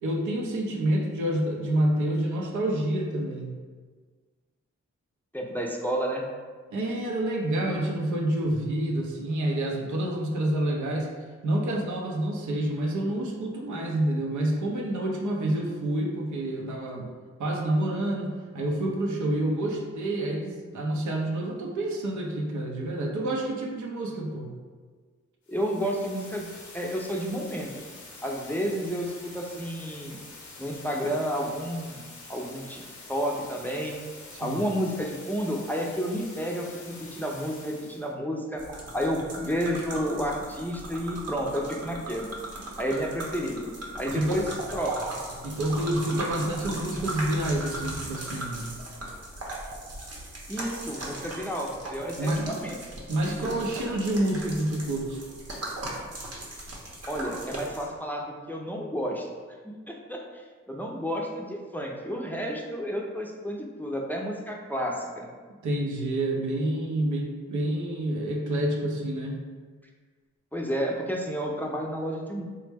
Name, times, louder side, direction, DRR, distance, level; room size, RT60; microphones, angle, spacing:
voice 1, 0.0-3.5 6.7-11.1 11.4-17.1 17.4-24.5 34.3-34.6 44.1-44.4 45.4-48.7 52.2-52.6 53.1-55.2 65.6-69.4, right 1 dB, 85° right, 0 dB, 0.6 m, -28 dB
voice 2, 5.3-6.3 25.5-26.5 26.7-27.7 28.2-30.2 30.6-32.8 33.1-34.0 34.4-38.6 38.9-42.3 42.8-45.0 50.5-53.6 57.1-59.3 59.6-65.3 70.5-72.4, equal, 5° left, -1 dB, 0.4 m, -31 dB
sound 1, 25.4-38.1, left 3 dB, 85° left, 0.7 m, -46 dB
sound 2, 38.6-57.9, right 1 dB, 55° right, 0.8 m, -38 dB
3.2 x 2.1 x 3.3 m, 1.5 s
cardioid pair, 55°, 29 cm